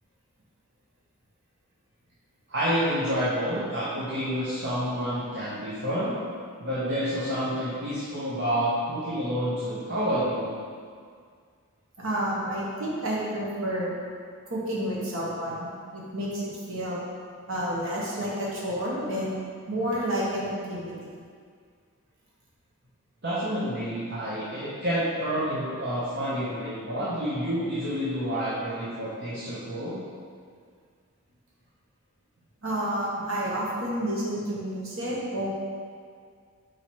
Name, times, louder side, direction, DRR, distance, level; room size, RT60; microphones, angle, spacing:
voice 1, 2.5-6.2 6.6-10.5 12.5-12.6 23.2-30.0, equal, 50° right, -10 dB, 1.0 m, -29 dB
voice 2, 12.0-13.9 14.5-15.6 15.9-16.4 16.7-17.0 17.5-19.4 19.7-20.9 32.6-35.5, equal, 65° right, -5 dB, 1.3 m, -30 dB
4.7 x 4.4 x 4.7 m, 2.1 s
head